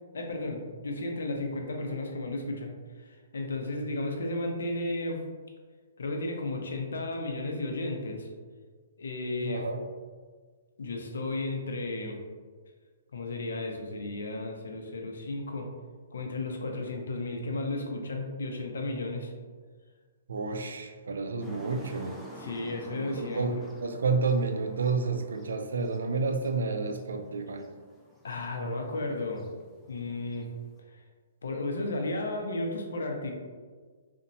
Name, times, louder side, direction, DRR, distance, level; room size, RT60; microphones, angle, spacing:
voice 1, 0.1-2.7 3.0-5.2 6.0-8.3 9.0-9.6 10.8-12.2 13.1-15.7 16.1-19.3 22.4-23.5 28.2-29.4 29.9-30.5 31.4-33.3, left 2 dB, 85° left, 2 dB, 0.5 m, -33 dB
voice 2, 9.4-9.8 20.3-22.2 22.9-27.7, right 4 dB, 85° right, 6 dB, 0.3 m, -30 dB
sound 1, 21.4-30.8, equal, 5° left, 0.3 m, -50 dB
2.8 x 2.1 x 2.6 m, 1.5 s
hypercardioid pair, 145°, 0 cm